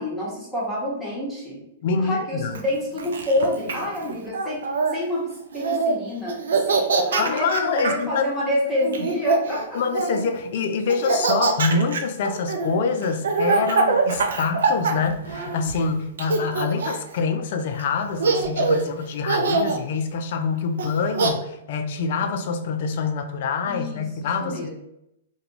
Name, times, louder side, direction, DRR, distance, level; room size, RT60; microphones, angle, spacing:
voice 1, 0.0-1.6 2.0-6.4 6.7-9.8 23.6-24.0 24.4-24.7, left 1 dB, 5° left, -7 dB, 1.0 m, -27 dB
voice 2, 1.8-2.5 7.2-8.2 9.7-24.7, left 5 dB, 60° left, 7 dB, 0.4 m, -25 dB
Laughter, 2.5-4.9 5.5-6.0 6.3-8.0 8.8-10.3 10.9-15.8 16.2-17.1 17.8-17.9 18.2-18.9 19.3-19.8 20.8-21.3, right 4 dB, 75° right, 0.4 m, -23 dB
2.4 x 2.2 x 2.9 m, 0.80 s
hypercardioid pair, 125°, 0 cm